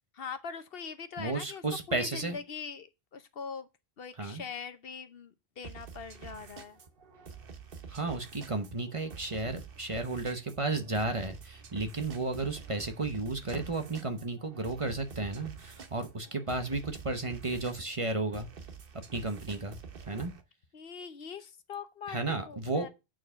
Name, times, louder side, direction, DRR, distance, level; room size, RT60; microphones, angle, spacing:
voice 1, 0.1-1.6 1.9-3.7 4.0-6.8 20.1-20.2 20.7-22.9, left 6 dB, 65° left, 1.0 m, -42 dB
voice 2, 1.2-2.4 4.2-4.4 7.9-18.5 19.1-19.8 20.1-20.3 22.1-22.9, right 2 dB, 35° right, 0.9 m, -33 dB
sound 1, 5.6-20.4, right 6 dB, 60° right, 1.1 m, -48 dB
8.9 x 4.7 x 5.6 m
omnidirectional pair, 1.1 m